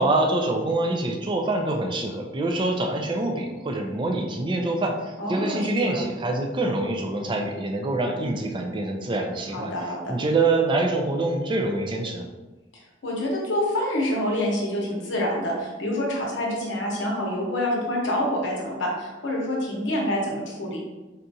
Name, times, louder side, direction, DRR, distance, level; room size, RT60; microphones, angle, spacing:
voice 1, 0.0-9.7 10.1-12.2, right 2 dB, 25° right, 2 dB, 0.4 m, -25 dB
voice 2, 5.2-6.0 9.5-10.1 13.0-20.8, left 1 dB, 70° left, -2 dB, 0.8 m, -27 dB
4.1 x 2.4 x 2.6 m, 1.1 s
head